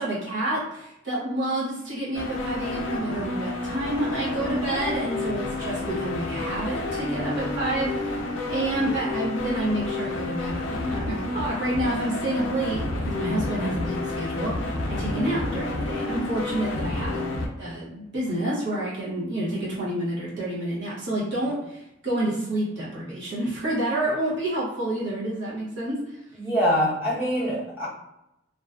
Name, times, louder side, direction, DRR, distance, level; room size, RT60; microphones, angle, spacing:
voice 1, 0.0-17.3 17.6-25.9, right 1 dB, 60° right, -7 dB, 0.8 m, -29 dB
sound 1, 2.1-17.5, left 2 dB, 70° left, 0.4 m, -30 dB
voice 2, 26.4-27.9, equal, 10° right, -11 dB, 0.9 m, -24 dB
2.5 x 2.2 x 2.3 m, 0.85 s
head